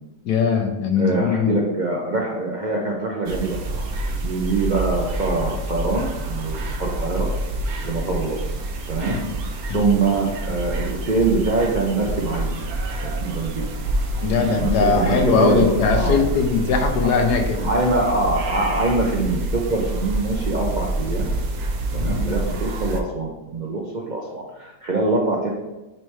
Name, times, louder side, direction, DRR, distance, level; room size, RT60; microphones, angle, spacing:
voice 1, 0.2-1.5 9.1-9.3 9.7-9.9 14.2-17.7 21.9-22.2, left 5 dB, 75° left, 3 dB, 1.4 m, -20 dB
voice 2, 1.0-3.8 4.2-7.3 7.8-8.5 8.9-9.2 9.7-12.6 13.0-13.6 14.3-16.2 17.6-21.3 21.9-25.5, right 3 dB, 50° right, -2 dB, 0.5 m, -24 dB
sound 1, 3.3-23.0, right 2 dB, 65° right, 1.2 m, -27 dB
9.1 x 3.2 x 3.3 m, 1.1 s
omnidirectional pair, 1.8 m